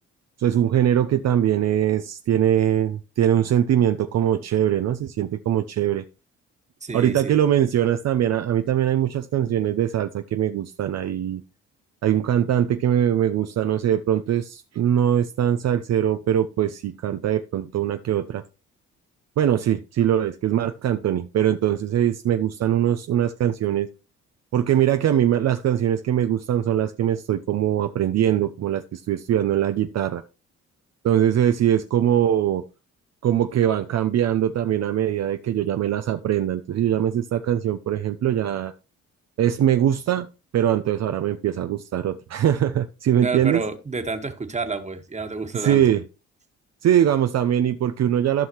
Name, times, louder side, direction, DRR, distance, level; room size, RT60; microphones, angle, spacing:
voice 1, 0.4-6.0 6.9-11.4 12.0-18.4 19.4-23.9 24.5-30.2 31.0-32.6 33.2-38.7 39.4-40.3 40.5-43.6 45.5-46.0 46.8-48.5, right 10 dB, 60° right, 0.6 m, -22 dB
voice 2, 6.8-7.3 43.2-45.8, right 4 dB, 25° right, 1.6 m, -29 dB
14.5 x 5.6 x 3.0 m
cardioid pair, 90°, 30 cm